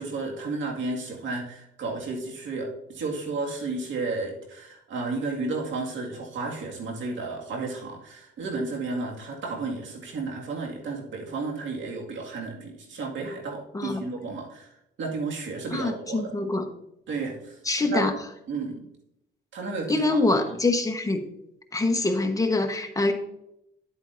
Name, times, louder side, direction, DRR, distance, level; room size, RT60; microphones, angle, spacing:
voice 1, 0.0-16.3 17.1-18.1 18.5-18.8 19.5-20.6, right 3 dB, 70° right, 0 dB, 2.1 m, -33 dB
voice 2, 15.7-16.7 17.6-18.1 19.9-21.2 21.7-23.1, left 2 dB, 15° left, 5 dB, 1.2 m, -24 dB
10.0 x 8.3 x 2.6 m, 0.80 s
cardioid pair, 90°, 20 cm